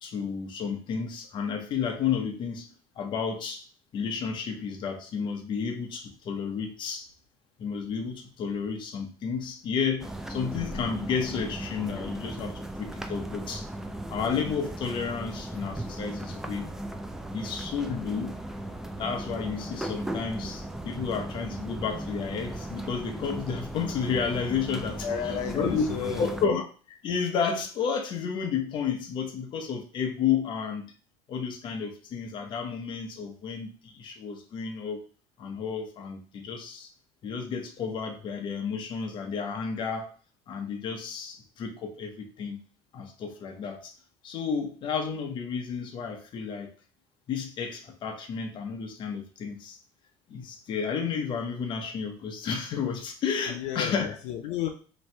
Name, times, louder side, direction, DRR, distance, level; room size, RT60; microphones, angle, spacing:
voice 1, 0.0-2.7 3.0-3.7 3.9-7.1 7.6-13.7 14.1-16.7 17.3-18.4 19.0-25.1 25.5-30.9 31.3-35.0 35.4-36.9 37.2-40.1 40.5-42.6 42.9-43.9 44.2-46.7 47.3-49.8 50.3-54.1, left 6 dB, 40° left, 3 dB, 0.8 m, -31 dB
sound 1, 10.0-26.5, right 1 dB, 5° right, 0.3 m, -37 dB
voice 2, 25.0-26.4 53.5-54.7, left 9 dB, 75° left, 4 dB, 0.6 m, -33 dB
3.1 x 2.7 x 4.3 m, 0.39 s
cardioid pair, 150°, 12 cm